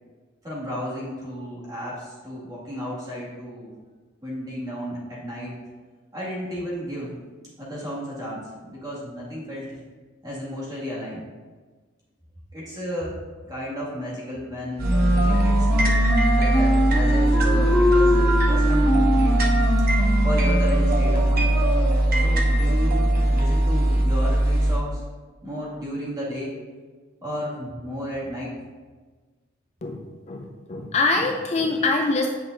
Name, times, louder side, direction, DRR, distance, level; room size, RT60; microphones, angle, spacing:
voice 1, 0.4-3.7 4.2-5.5 6.1-7.2 7.6-9.7 10.2-11.2 12.5-13.1 13.4-15.9 16.3-19.4 20.2-21.5 22.2-25.0 25.4-26.5 27.2-28.5, equal, 20° right, -7 dB, 2.1 m, -33 dB
Wind instrument woodwind instrument, 14.8-21.0, left 1 dB, 10° left, 1.3 m, -23 dB
sound 1, 14.8-24.8, right 1 dB, 45° right, 0.9 m, -20 dB
voice 2, 29.8-32.3, left 3 dB, 35° left, 2 dB, 0.4 m, -24 dB
9.0 x 5.3 x 2.6 m, 1.4 s
head